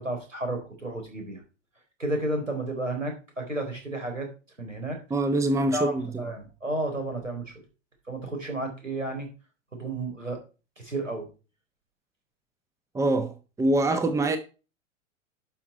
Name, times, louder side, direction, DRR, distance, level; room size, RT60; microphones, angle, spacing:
voice 1, 0.0-1.4 2.0-4.3 4.6-5.0 5.7-7.5 8.1-9.3 9.7-10.4 10.8-11.3, right 2 dB, 90° right, 4.0 m, -32 dB
voice 2, 5.1-6.3 12.9-14.4, right 2 dB, 10° right, 1.0 m, -24 dB
12.0 x 6.0 x 4.5 m
figure-of-eight pair, 95°, 37 cm